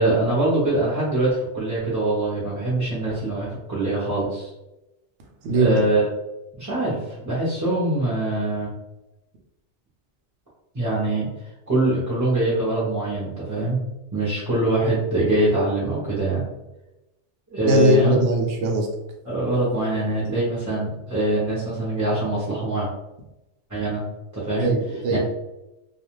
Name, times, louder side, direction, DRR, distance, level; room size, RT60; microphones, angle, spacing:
voice 1, 0.0-4.5 5.5-6.1 6.5-8.7 10.7-11.3 11.7-13.8 14.1-16.4 17.5-18.2 19.2-22.9 23.7-24.0 24.3-24.7 25.1-25.2, right 2 dB, 20° right, -8 dB, 0.6 m, -23 dB
voice 2, 5.4-5.8 17.6-18.9 24.6-25.2, equal, 85° right, 1 dB, 0.9 m, -20 dB
2.4 x 2.3 x 3.0 m, 0.96 s
omnidirectional pair, 1.2 m